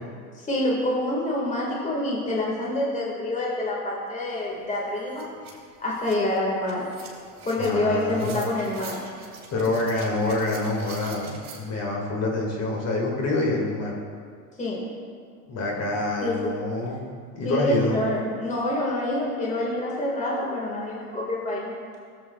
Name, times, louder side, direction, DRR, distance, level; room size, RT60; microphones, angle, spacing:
voice 1, 0.3-5.3 5.8-6.8 7.4-9.0 14.6-14.8 16.2-16.6 17.4-21.7, left 1 dB, 15° left, -3 dB, 1.8 m, -27 dB
sound 1, 4.3-4.4 4.7-11.6, right 4 dB, 35° right, 2.3 m, -44 dB
voice 2, 7.6-8.4 9.5-14.0 15.5-17.0 17.3-18.0, left 2 dB, 35° left, -2 dB, 2.0 m, -26 dB
15.0 x 7.7 x 2.3 m, 2.1 s
hypercardioid pair, 95°, 45 cm